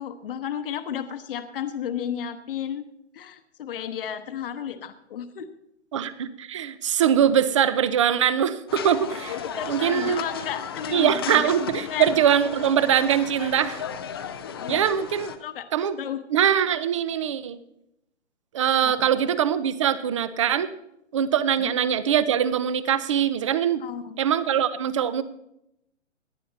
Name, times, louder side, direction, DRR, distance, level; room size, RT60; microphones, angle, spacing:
voice 1, 0.0-2.9 3.1-5.5 9.3-12.1 14.5-14.8 15.4-16.2 18.8-19.1 21.6-21.7 23.8-24.2, left 9 dB, 50° left, 9 dB, 1.0 m, -33 dB
voice 2, 5.9-9.4 9.7-10.2 10.9-13.8 14.7-15.3 15.7-16.0 16.3-17.6 18.5-20.7 21.1-23.8 24.2-25.2, right 9 dB, 25° right, 15 dB, 0.5 m, -22 dB
sound 1, 8.7-15.4, left 7 dB, 20° left, 0.5 m, -35 dB
18.0 x 10.5 x 4.0 m, 0.80 s
hypercardioid pair, 155°, 36 cm